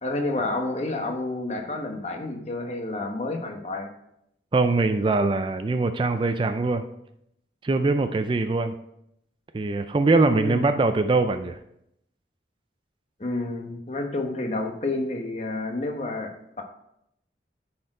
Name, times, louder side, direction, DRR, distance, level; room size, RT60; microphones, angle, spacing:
voice 1, 0.0-3.9 10.3-10.7 13.2-16.6, left 2 dB, 35° left, 3 dB, 1.1 m, -29 dB
voice 2, 4.5-6.8 7.6-8.7 9.5-11.6, right 3 dB, 25° right, 9 dB, 0.3 m, -22 dB
10.0 x 4.4 x 4.9 m, 0.78 s
head